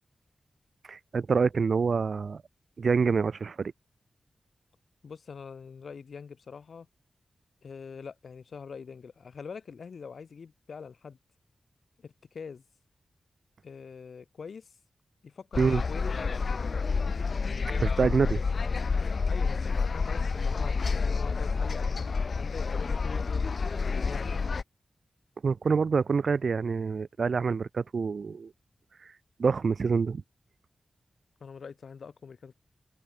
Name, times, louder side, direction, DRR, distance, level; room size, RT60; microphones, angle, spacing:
voice 1, 0.9-2.4 2.8-3.7 15.6-15.8 17.8-18.4 25.4-28.5 29.4-30.2, right 5 dB, 65° right, 1.2 m, -26 dB
voice 2, 5.0-6.9 7.6-11.2 12.0-12.6 13.6-14.7 15.2-16.8 19.2-24.3 31.4-32.5, left 5 dB, 70° left, 4.5 m, -44 dB
sound 1, 15.5-24.6, left 4 dB, 55° left, 0.8 m, -29 dB
wide cardioid pair, 100°, 0 cm